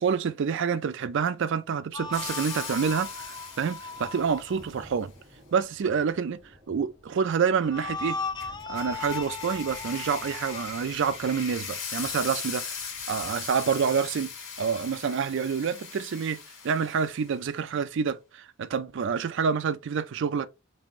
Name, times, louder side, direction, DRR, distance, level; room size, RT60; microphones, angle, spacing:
voice 1, 0.0-5.1 5.5-6.4 6.7-8.3 8.7-12.6 13.1-14.3 14.6-16.4 16.6-20.5, right 6 dB, 60° right, 0.4 m, -27 dB
sound 1, 1.9-4.7 7.6-10.7, left 4 dB, 20° left, 0.3 m, -37 dB
Thunder, 2.0-15.0, equal, 40° right, 2.2 m, -55 dB
sound 2, 2.1-4.5 8.4-17.3, left 6 dB, 80° left, 1.7 m, -39 dB
5.4 x 2.5 x 2.9 m
head